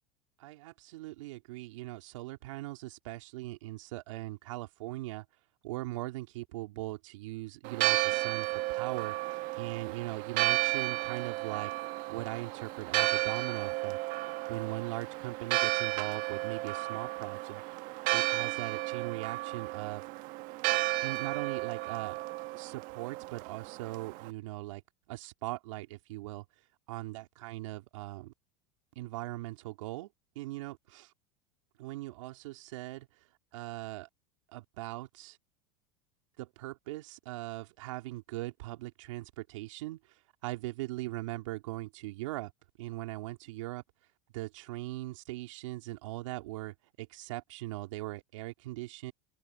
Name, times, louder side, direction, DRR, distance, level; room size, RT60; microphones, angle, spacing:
voice 1, 0.4-5.2 5.6-11.7 12.1-14.0 14.5-17.6 18.1-20.1 21.0-22.2 22.5-24.8 25.1-26.4 26.9-28.3 28.9-30.1 30.3-31.1 31.8-33.1 33.5-34.1 34.5-35.4 36.4-40.0 40.4-42.5 42.8-43.8 44.3-49.1, right 18 dB, 75° right, 3.1 m, -40 dB
Church bell, 7.6-24.3, right 21 dB, 55° right, 1.5 m, -33 dB
hypercardioid pair, 105°, 16 cm